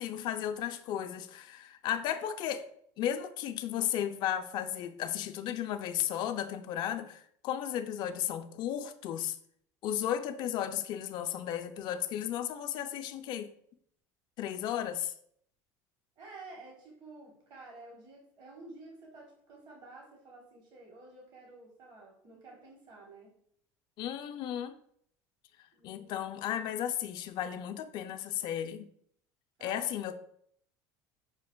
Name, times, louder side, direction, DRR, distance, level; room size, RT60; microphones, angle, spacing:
voice 1, 0.0-2.7 3.0-9.4 9.8-13.5 14.4-15.1 24.0-24.8 25.8-28.9 29.6-30.2, left 10 dB, 55° left, 8 dB, 0.3 m, -34 dB
voice 2, 16.2-23.4 25.7-26.1 29.6-30.2, right 3 dB, 50° right, -1 dB, 1.1 m, -51 dB
5.7 x 2.4 x 2.2 m, 0.66 s
supercardioid pair, 100°, 9 cm